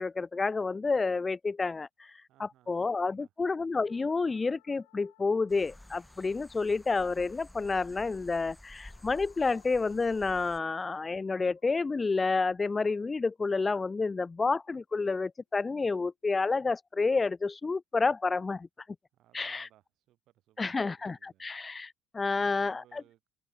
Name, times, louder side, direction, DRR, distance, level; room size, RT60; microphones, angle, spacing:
voice 1, 0.0-2.1 2.4-18.7 19.3-19.7 20.6-23.0, left 4 dB, 25° left, 0.4 m, -30 dB
voice 2, 2.3-2.7 3.0-3.3 19.1-21.5 22.3-23.3, right 13 dB, 60° right, 6.6 m, -62 dB
sound 1, 3.7-13.9, left 23 dB, 80° left, 5.3 m, -68 dB
sound 2, 5.5-10.6, left 1 dB, 5° left, 4.6 m, -52 dB
open air
hypercardioid pair, 65°, 0 cm